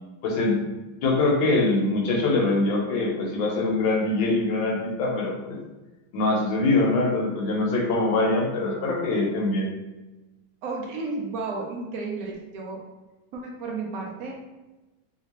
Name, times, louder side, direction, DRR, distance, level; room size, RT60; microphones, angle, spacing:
voice 1, 0.2-0.6 1.0-5.6 6.1-9.7, left 2 dB, 75° left, -1 dB, 1.4 m, -23 dB
voice 2, 10.6-12.8 13.3-14.4, right 3 dB, 85° right, -1 dB, 0.7 m, -32 dB
3.2 x 2.9 x 2.8 m, 1.1 s
omnidirectional pair, 2.2 m